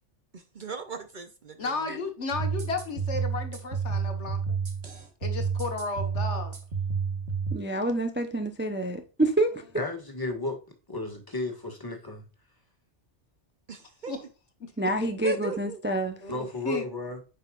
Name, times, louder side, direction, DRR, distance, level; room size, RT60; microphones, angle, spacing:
voice 1, 0.3-1.7 13.7-14.1 15.2-15.8, right 5 dB, 50° right, 0.9 m, -37 dB
voice 2, 1.6-4.4 5.2-6.5 14.1-14.3 14.6-14.7 16.2-16.9, left 3 dB, 85° left, 1.6 m, -33 dB
sound 1, 2.3-7.6, right 5 dB, 65° right, 1.7 m, -30 dB
voice 3, 7.5-9.6 14.8-16.2, right 1 dB, 10° right, 0.6 m, -27 dB
voice 4, 9.7-10.6 10.9-12.2 16.3-17.2, left 2 dB, 20° left, 1.7 m, -33 dB
8.7 x 5.4 x 2.4 m
omnidirectional pair, 1.2 m